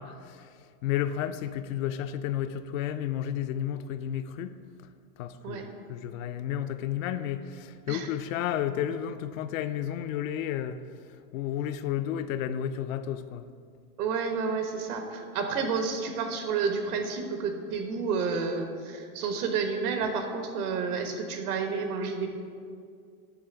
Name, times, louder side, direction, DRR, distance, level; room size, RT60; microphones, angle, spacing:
voice 1, 0.0-4.6 5.2-13.5, left 10 dB, 60° left, 0.5 m, -32 dB
voice 2, 14.0-22.3, right 5 dB, 75° right, 1.3 m, -30 dB
9.8 x 3.3 x 6.8 m
supercardioid pair, 145°, 45 cm